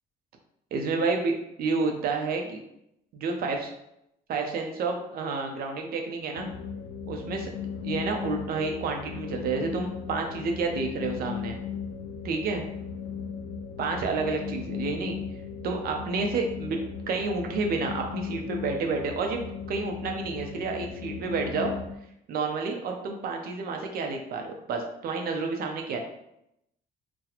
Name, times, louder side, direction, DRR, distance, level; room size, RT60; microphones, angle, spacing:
voice 1, 0.7-2.6 3.1-3.7 4.3-6.5 7.1-7.5 7.8-11.6 12.2-12.6 13.8-15.2 15.6-16.8 17.1-21.7 22.3-26.0, right 4 dB, 65° right, 3 dB, 0.7 m, -30 dB
sound 1, 6.4-22.0, left 6 dB, 90° left, 0.4 m, -37 dB
4.0 x 2.3 x 2.9 m, 0.80 s
cardioid pair, 110°, 17 cm